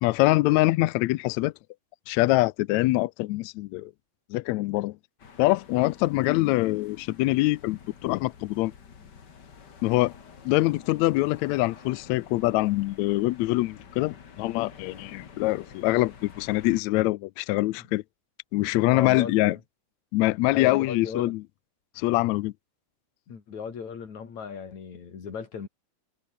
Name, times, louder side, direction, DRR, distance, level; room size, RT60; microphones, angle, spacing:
voice 1, 0.0-1.5 2.1-3.9 4.3-5.0 5.4-8.7 9.8-10.1 10.4-18.0 18.5-19.6 20.1-21.4 22.0-22.5, left 19 dB, 80° left, 1.7 m, -24 dB
sound 1, 5.2-16.8, left 6 dB, 40° left, 2.0 m, -49 dB
voice 2, 18.9-19.6 20.5-21.4 23.3-25.7, left 6 dB, 60° left, 4.6 m, -36 dB
omnidirectional pair, 3.7 m